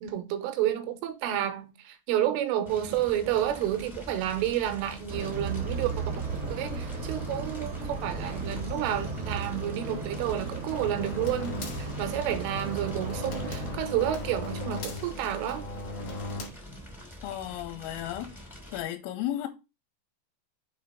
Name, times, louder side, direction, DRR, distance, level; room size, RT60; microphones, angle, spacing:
voice 1, 0.0-5.9 6.4-15.6, right 11 dB, 85° right, 3.2 m, -30 dB
Fire, 2.6-18.8, equal, ahead, 0.4 m, -44 dB
sound 1, 5.1-13.8, right 3 dB, 50° right, 1.0 m, -35 dB
sound 2, 10.7-16.5, left 2 dB, 60° left, 1.5 m, -38 dB
voice 2, 17.2-18.4 18.7-19.5, left 12 dB, 85° left, 3.2 m, -34 dB
7.2 x 3.4 x 5.5 m
omnidirectional pair, 5.9 m